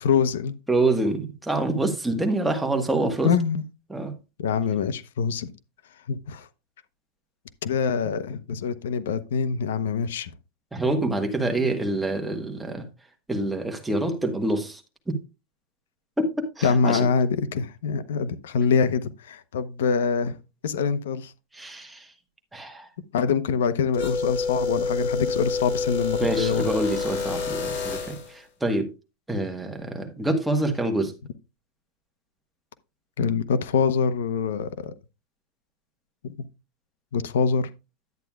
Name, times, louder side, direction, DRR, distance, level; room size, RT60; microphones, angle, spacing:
voice 1, 0.0-0.6 3.2-3.6 4.4-5.5 6.1-6.5 7.6-10.3 16.6-20.3 20.6-21.3 23.1-26.7 33.2-34.9 36.2-36.3 37.1-37.7, left 6 dB, 90° left, 0.8 m, -24 dB
voice 2, 0.7-3.3 3.9-4.1 10.7-12.9 13.3-14.8 15.1-15.2 16.2-17.1 21.5-22.1 22.5-22.9 26.2-28.9 29.3-31.1, right 2 dB, 5° right, 1.4 m, -26 dB
sound 1, 23.9-28.3, left 4 dB, 70° left, 5.0 m, -28 dB
10.5 x 9.1 x 2.4 m
supercardioid pair, 155°, 0 cm